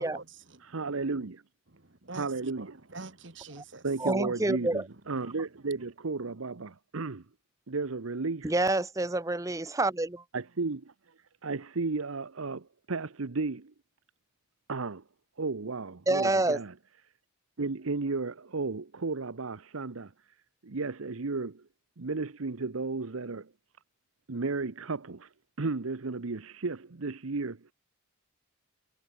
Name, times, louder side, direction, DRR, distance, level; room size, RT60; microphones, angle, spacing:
voice 1, 0.0-0.6 1.1-1.2 1.7-3.9 4.9-5.0, right 3 dB, 60° right, 1.8 m, -45 dB
voice 2, 0.6-1.4 2.1-2.7 3.8-7.2 7.7-8.5 10.3-10.9 11.4-13.7 14.7-15.0 15.4-16.7 17.6-20.1 20.6-21.6 22.0-23.5 24.3-25.3 25.6-27.7, right 3 dB, 85° right, 0.9 m, -34 dB
voice 3, 4.0-4.8 8.4-10.2 16.1-16.6, right 2 dB, 15° right, 0.7 m, -27 dB
head